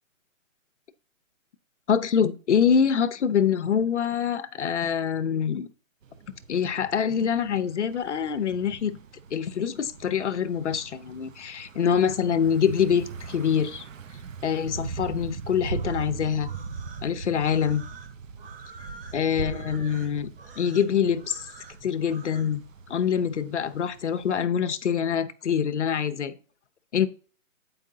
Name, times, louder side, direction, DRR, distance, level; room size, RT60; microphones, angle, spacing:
voice 1, 1.9-5.7 6.5-9.0 9.3-13.8 14.4-16.5 17.0-17.8 19.1-20.3 20.6-21.5 21.8-22.6 22.9-26.3 26.9-27.1, left 7 dB, 60° left, 0.8 m, -25 dB
Thunder / Bicycle, 6.0-24.4, right 5 dB, 70° right, 0.9 m, -40 dB
sound 1, 15.7-22.5, right 4 dB, 45° right, 1.4 m, -48 dB
8.9 x 4.8 x 3.8 m
hypercardioid pair, 170°, 40 cm